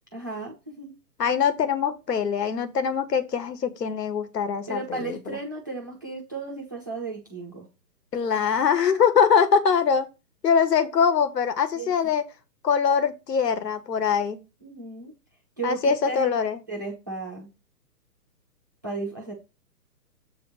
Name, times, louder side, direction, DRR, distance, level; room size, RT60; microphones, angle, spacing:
voice 1, 0.1-1.0 4.7-7.7 11.7-11.9 14.6-15.1 15.6-16.3 16.7-17.5 18.8-19.3, right 3 dB, 15° right, 0.5 m, -34 dB
voice 2, 1.2-5.4 8.1-10.1 10.4-12.2 12.6-14.4 15.6-16.6, left 6 dB, 75° left, 1.4 m, -23 dB
7.5 x 3.4 x 6.3 m
hypercardioid pair, 155°, 49 cm